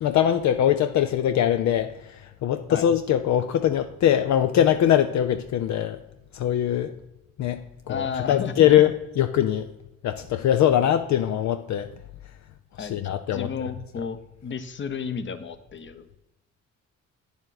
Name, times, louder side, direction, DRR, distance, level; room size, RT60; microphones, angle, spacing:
voice 1, 0.0-6.0 6.3-6.9 7.4-9.7 10.0-11.9 12.8-13.5, left 10 dB, 65° left, 0.6 m, -22 dB
voice 2, 7.9-8.5 12.8-13.0 13.3-14.2 14.4-16.2, left 6 dB, 40° left, 0.9 m, -32 dB
8.9 x 7.1 x 4.0 m
cardioid pair, 90°, 30 cm